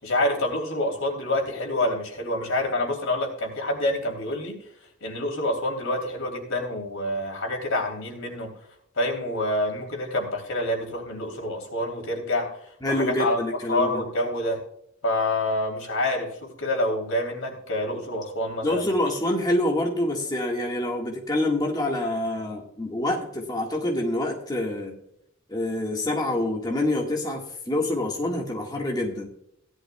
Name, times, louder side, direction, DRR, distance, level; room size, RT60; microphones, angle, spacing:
voice 1, 0.0-4.5 5.0-8.5 9.0-12.5 12.9-13.4 13.7-14.6 15.0-18.9, left 1 dB, 80° left, 2 dB, 3.2 m, -27 dB
voice 2, 12.8-14.0 18.6-25.0 25.5-29.3, left 1 dB, 20° left, 0 dB, 1.6 m, -26 dB
16.5 x 11.5 x 2.3 m, 0.72 s
head